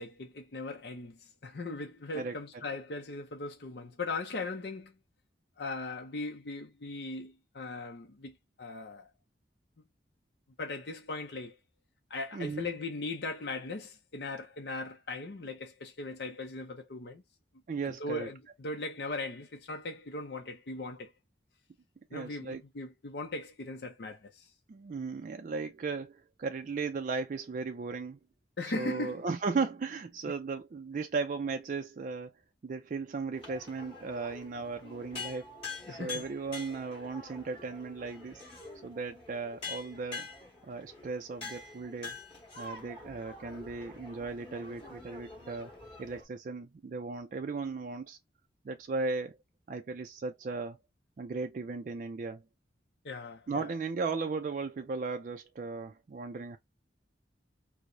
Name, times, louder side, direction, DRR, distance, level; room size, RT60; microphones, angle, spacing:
voice 1, 0.0-4.9 5.6-9.1 10.6-11.6 12.1-17.2 17.8-21.1 22.1-24.5 28.6-29.2 35.9-36.2 53.0-53.7, left 2 dB, 65° left, 0.6 m, -39 dB
voice 2, 12.3-12.7 17.7-18.3 22.1-22.6 24.7-28.2 28.6-32.3 32.6-35.5 35.9-38.4 38.8-40.3 40.6-42.2 42.6-45.7 46.0-48.2 48.6-49.4 49.7-50.8 51.2-52.4 53.5-56.6, right 4 dB, 45° right, 0.3 m, -36 dB
sound 1, 33.3-46.2, left 4 dB, 30° left, 1.9 m, -46 dB
4.6 x 2.0 x 2.6 m
head